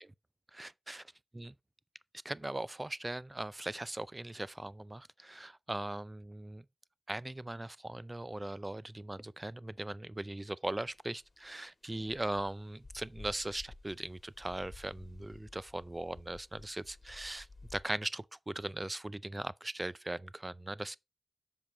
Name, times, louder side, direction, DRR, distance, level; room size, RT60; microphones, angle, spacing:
voice 1, 0.6-1.0 1.3-1.5 2.2-6.6 7.1-21.0, right 1 dB, 25° right, 0.4 m, -39 dB
sound 1, 10.9-17.8, left 3 dB, 55° left, 1.7 m, -54 dB
7.4 x 5.3 x 4.3 m
cardioid pair, 45°, 0 cm